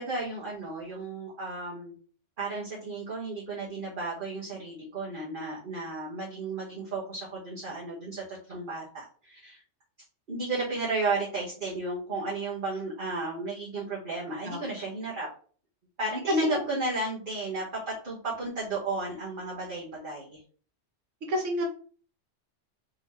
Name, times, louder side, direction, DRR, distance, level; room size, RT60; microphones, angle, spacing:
voice 1, 0.0-1.9 2.4-9.6 10.3-15.3 16.0-20.4, right 2 dB, 45° right, -6 dB, 1.5 m, -33 dB
voice 2, 21.3-21.6, equal, 85° right, 2 dB, 1.3 m, -29 dB
4.0 x 4.0 x 3.1 m, 0.42 s
omnidirectional pair, 1.2 m